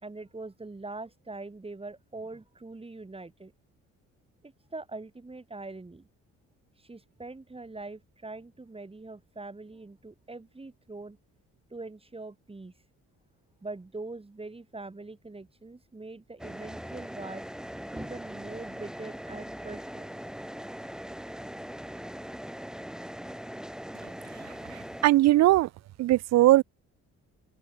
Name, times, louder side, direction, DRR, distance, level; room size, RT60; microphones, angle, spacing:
voice 1, 0.0-3.5 4.4-6.1 6.8-11.2 11.7-12.7 13.6-17.4 17.9-20.1, right 3 dB, 20° right, 3.7 m, -42 dB
sound 1, 16.4-25.1, equal, ahead, 3.2 m, -40 dB
voice 2, 25.0-25.7 26.0-26.6, right 16 dB, 60° right, 0.4 m, -19 dB
open air
cardioid pair, 90°, 30 cm